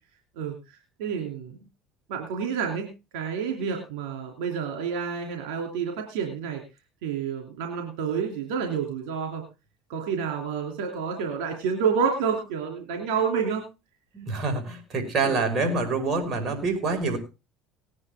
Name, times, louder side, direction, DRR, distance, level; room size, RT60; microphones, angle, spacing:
voice 1, 1.0-1.5 2.1-2.9 3.1-6.6 7.0-9.4 9.9-13.6 15.2-15.4, right 6 dB, 80° right, 2 dB, 2.8 m, -29 dB
voice 2, 14.1-17.2, right 3 dB, 45° right, 4 dB, 5.3 m, -26 dB
19.0 x 9.8 x 3.6 m, 0.28 s
supercardioid pair, 95°, 0 cm